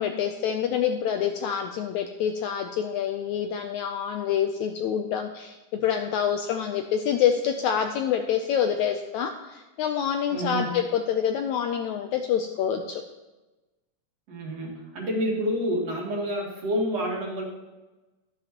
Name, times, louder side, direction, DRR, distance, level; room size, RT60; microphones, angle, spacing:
voice 1, 0.0-13.0, left 8 dB, 80° left, 5 dB, 1.7 m, -27 dB
voice 2, 10.3-10.7 14.3-17.4, equal, 55° right, -1 dB, 2.5 m, -28 dB
12.0 x 11.5 x 3.0 m, 1.1 s
omnidirectional pair, 3.9 m